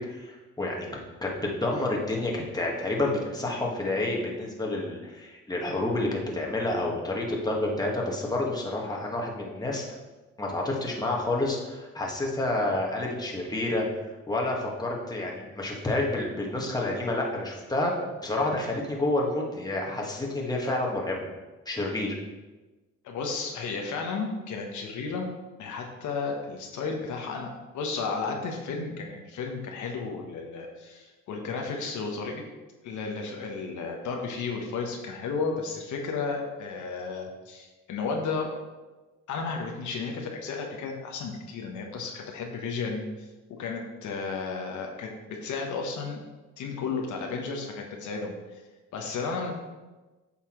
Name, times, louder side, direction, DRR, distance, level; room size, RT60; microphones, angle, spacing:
voice 1, 0.0-9.8 10.4-13.8 14.3-17.9 18.2-21.2 21.6-22.2, left 2 dB, 15° left, -2 dB, 1.5 m, -29 dB
voice 2, 23.0-25.3 25.6-32.4 32.8-38.5 39.3-46.2 46.6-48.3 48.9-49.5, left 4 dB, 75° left, 1 dB, 1.1 m, -33 dB
8.4 x 5.7 x 3.1 m, 1.2 s
cardioid pair, 90°, 30 cm